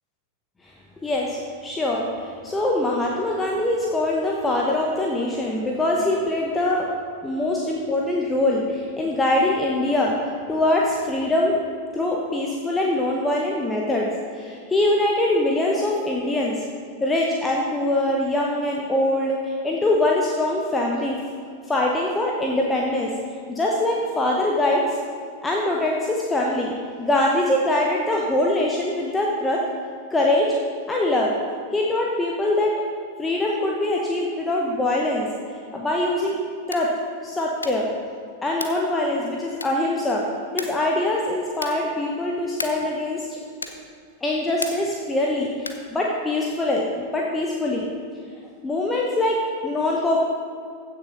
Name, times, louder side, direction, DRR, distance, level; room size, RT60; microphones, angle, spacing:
voice 1, 1.0-6.9 7.2-11.6 11.9-14.1 14.3-16.6 17.0-21.2 21.7-23.1 23.5-25.0 25.4-26.7 27.0-29.6 30.1-30.5 30.9-31.3 31.7-32.8 33.2-35.3 35.7-36.4 36.7-36.9 37.2-37.9 38.4-40.2 40.5-43.4 44.2-46.8 47.1-47.9 48.6-50.2, left 1 dB, 10° left, -2 dB, 1.1 m, -23 dB
sound 1, 36.6-37.0 37.6-37.9 38.5-38.9 39.6-40.0 40.6-40.9 41.5-41.9 42.5-42.9 43.6-43.9 44.6-45.0 45.6-45.9, left 3 dB, 80° left, 0.8 m, -34 dB
15.5 x 6.7 x 4.0 m, 2.2 s
figure-of-eight pair, 90°, 0 cm